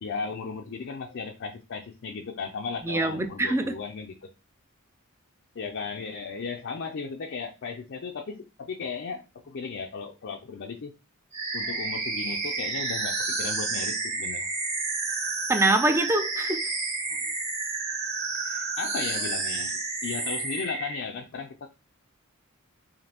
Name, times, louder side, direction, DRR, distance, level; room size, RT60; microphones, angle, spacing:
voice 1, 0.0-4.3 5.6-10.9 11.5-14.5 18.8-21.7, left 5 dB, 55° left, 0.4 m, -36 dB
voice 2, 2.8-3.7 15.5-16.7, right 2 dB, 10° right, 0.4 m, -24 dB
sound 1, 11.3-21.0, right 3 dB, 30° right, 1.1 m, -30 dB
5.1 x 2.6 x 2.9 m
head